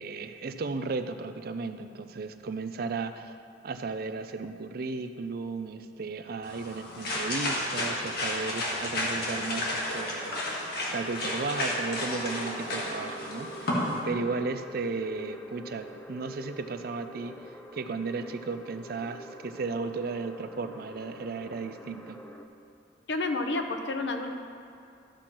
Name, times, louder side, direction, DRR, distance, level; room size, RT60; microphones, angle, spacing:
voice 1, 0.0-3.3 3.6-17.4 17.7-22.2, right 4 dB, 60° right, 9 dB, 0.5 m, -35 dB
sound 1, 6.4-14.0, left 1 dB, 60° left, 1.8 m, -32 dB
sound 2, 11.0-22.4, equal, 10° left, 0.5 m, -45 dB
voice 2, 23.1-24.3, left 2 dB, 85° left, 5 dB, 0.8 m, -30 dB
13.0 x 6.2 x 4.4 m, 2.5 s
head